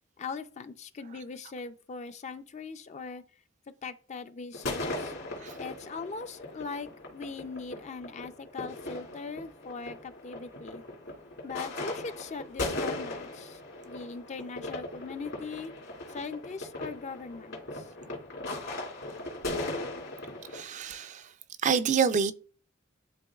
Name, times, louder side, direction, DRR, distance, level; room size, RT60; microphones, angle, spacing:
voice 1, 0.2-3.2 3.8-5.1 5.6-10.8 11.4-15.7 16.1-17.9, left 4 dB, 35° left, 0.4 m, -40 dB
sound 1, 4.5-20.6, left 2 dB, 65° left, 2.2 m, -38 dB
voice 2, 20.5-21.3 21.6-22.3, right 6 dB, 35° right, 0.4 m, -27 dB
11.0 x 3.8 x 2.3 m
head